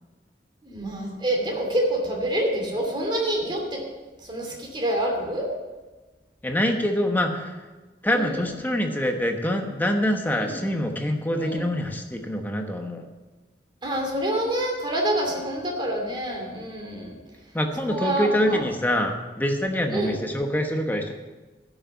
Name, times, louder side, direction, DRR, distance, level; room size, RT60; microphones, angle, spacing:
voice 1, 0.6-3.8 4.2-5.5 8.1-8.4 10.3-10.6 11.3-11.6 13.8-17.1 17.9-18.6 19.9-20.2, right 1 dB, 25° right, 0 dB, 2.7 m, -27 dB
voice 2, 6.4-7.6 8.0-13.1 17.5-21.1, equal, 10° left, 3 dB, 1.1 m, -25 dB
11.5 x 6.6 x 8.2 m, 1.2 s
head